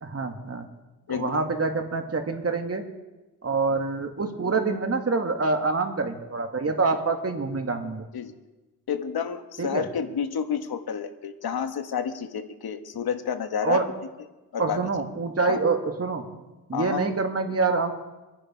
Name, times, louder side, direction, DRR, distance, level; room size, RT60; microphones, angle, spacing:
voice 1, 0.0-0.7 1.1-2.8 3.4-8.0 9.6-9.8 13.6-13.9 14.6-16.3 16.7-17.9, right 4 dB, 40° right, 5 dB, 2.2 m, -26 dB
voice 2, 1.1-1.4 8.1-8.3 8.9-13.8 14.5-15.0 15.5-15.6 16.7-17.0, left 7 dB, 75° left, 8 dB, 1.4 m, -30 dB
24.5 x 10.0 x 4.5 m, 1.1 s
cardioid pair, 65°, 37 cm